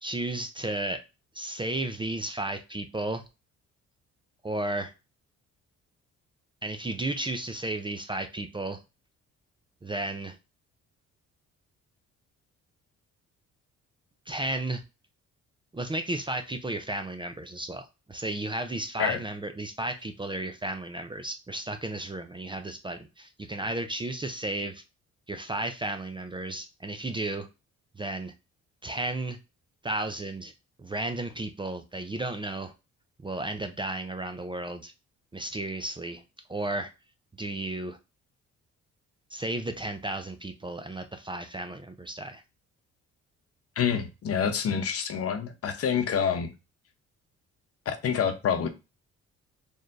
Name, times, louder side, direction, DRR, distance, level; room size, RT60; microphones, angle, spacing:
voice 1, 0.0-1.0 1.3-3.2 4.4-4.9 6.6-8.8 9.8-10.4 14.3-14.8 15.7-24.8 25.3-27.5 27.9-28.3 28.8-29.4 29.8-30.5 30.8-32.7 33.2-34.9 35.3-36.2 36.5-36.9 37.4-38.0 39.3-42.4, right 2 dB, 15° right, 0.5 m, -33 dB
voice 2, 43.8-46.5 47.9-48.7, left 7 dB, 50° left, 0.8 m, -27 dB
4.2 x 3.2 x 2.5 m
cardioid pair, 90°, 30 cm